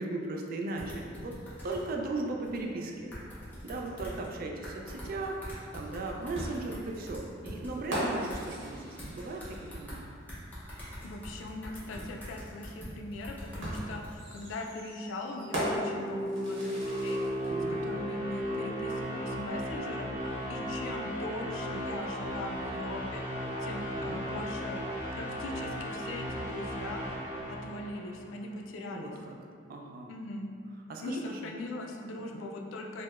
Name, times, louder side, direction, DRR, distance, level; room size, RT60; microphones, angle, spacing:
voice 1, 0.0-1.3 1.6-3.1 3.6-5.4 5.7-10.1 17.5-17.9 24.0-24.2 28.8-29.3 29.7-30.1 30.9-31.5 32.2-32.4, right 2 dB, 50° right, 1 dB, 0.3 m, -37 dB
sound 1, 0.8-1.8 2.4-2.6 3.1-4.3 4.6-8.4 9.0-10.0 10.3-14.1, equal, 10° left, 0.7 m, -43 dB
sound 2, 6.3-10.0 11.5-11.6 13.6-17.5, equal, 80° right, 0.9 m, -38 dB
voice 2, 11.0-23.2 23.6-24.8 25.1-27.0 27.5-29.1 30.1-30.5 31.0-33.0, left 2 dB, 80° left, 2 dB, 0.4 m, -40 dB
sound 3, 15.3-28.4, equal, 10° right, 1.0 m, -36 dB
4.5 x 2.0 x 2.4 m, 2.3 s
head